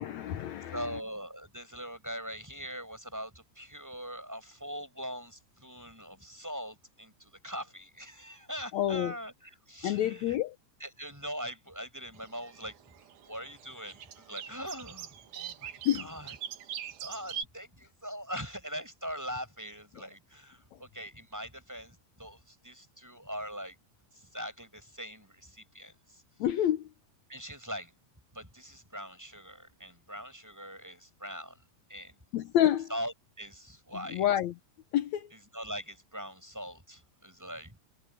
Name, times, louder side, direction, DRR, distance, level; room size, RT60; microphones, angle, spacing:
voice 1, 0.0-1.0 8.7-9.1 9.8-10.6 15.9-16.1 20.7-20.8 26.4-26.9 32.3-32.9 34.1-34.5 34.9-35.3, left 11 dB, 75° left, 2.1 m, -28 dB
voice 2, 0.7-10.4 10.8-12.7 13.3-16.4 17.0-23.7 24.1-26.2 27.3-27.9 28.3-31.6 31.9-32.1 32.9-34.2 35.3-37.8, equal, 5° right, 6.5 m, -42 dB
sound 1, 12.2-17.4, right 9 dB, 80° right, 3.0 m, -43 dB
omnidirectional pair, 3.5 m